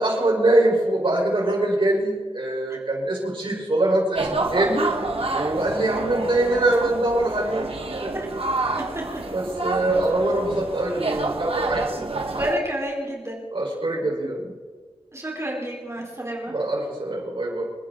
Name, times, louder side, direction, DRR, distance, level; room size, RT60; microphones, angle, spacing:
voice 1, 0.0-4.9 5.3-8.4 9.3-12.0 13.5-14.5 16.5-17.6, right 1 dB, 65° right, -2 dB, 5.5 m, -23 dB
sound 1, 4.1-12.5, right 3 dB, 80° right, 2.0 m, -28 dB
voice 2, 8.7-9.2 12.4-13.4 15.1-16.6, right 1 dB, 30° right, -2 dB, 4.2 m, -29 dB
29.0 x 10.0 x 4.1 m, 1.5 s
wide cardioid pair, 70°, 10 cm